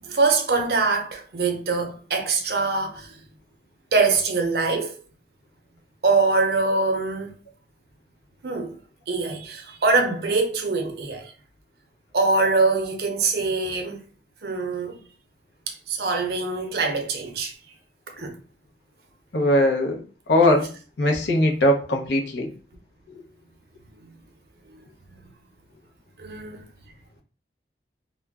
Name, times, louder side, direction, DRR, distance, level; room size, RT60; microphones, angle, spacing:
voice 1, 0.0-3.2 3.9-5.0 6.0-7.3 8.4-8.7 9.1-11.3 12.1-14.0 14.4-15.0 15.7-17.5 18.2-18.4 24.7-24.8 26.2-26.7, right 3 dB, 60° right, 0.6 m, -23 dB
voice 2, 19.3-20.0 20.3-20.7 21.0-22.5, left 1 dB, 80° left, 0.7 m, -20 dB
2.3 x 2.1 x 3.4 m
head